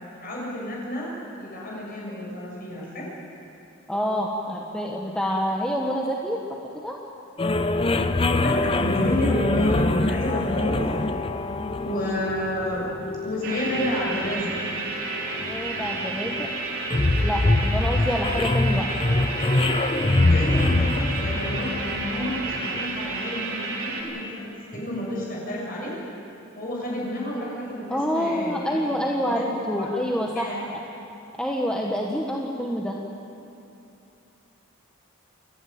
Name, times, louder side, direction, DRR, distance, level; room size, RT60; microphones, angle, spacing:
voice 1, 0.2-3.1 8.3-10.8 11.8-12.9 13.2-14.5 20.3-25.9 26.6-28.8 29.1-30.6, left 1 dB, 40° left, -4 dB, 7.0 m, -30 dB
voice 2, 3.9-6.4 6.7-7.0 15.4-16.5 17.2-18.9 27.9-30.5 31.4-33.0, equal, 5° left, -2 dB, 1.1 m, -27 dB
sound 1, 7.4-22.8, left 2 dB, 25° left, 0.6 m, -24 dB
sound 2, 13.4-24.0, right 3 dB, 65° right, 4.5 m, -31 dB
29.0 x 11.5 x 9.2 m, 2.8 s
head